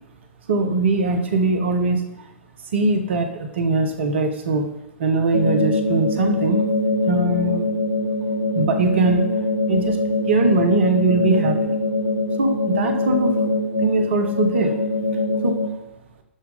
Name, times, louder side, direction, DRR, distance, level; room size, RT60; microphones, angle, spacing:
voice 1, 0.5-2.3 2.7-4.7 5.0-6.7 7.1-7.7 8.5-9.2 9.7-10.0 10.2-11.8 12.4-13.3 13.8-14.8 15.4-15.5, right 3 dB, 60° right, 6 dB, 1.2 m, -21 dB
sound 1, 5.3-15.7, left 2 dB, 85° left, 1.1 m, -23 dB
12.0 x 4.7 x 3.7 m, 0.90 s
figure-of-eight pair, 105°, 7 cm